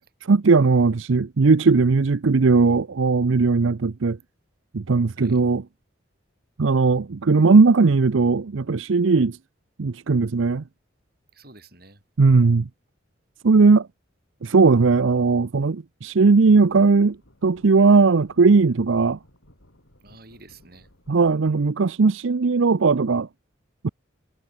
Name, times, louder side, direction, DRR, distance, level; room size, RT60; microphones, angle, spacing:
voice 1, 0.2-4.2 4.7-5.6 6.6-9.4 9.8-10.6 12.2-12.7 13.4-13.9 14.4-17.2 17.4-19.2 21.1-23.3 23.8-23.9, right 4 dB, 80° right, 0.6 m, -18 dB
voice 2, 11.3-12.0 20.0-20.9, right 2 dB, 50° right, 7.0 m, -49 dB
sound 1, 16.4-21.6, left 1 dB, 85° left, 7.1 m, -56 dB
head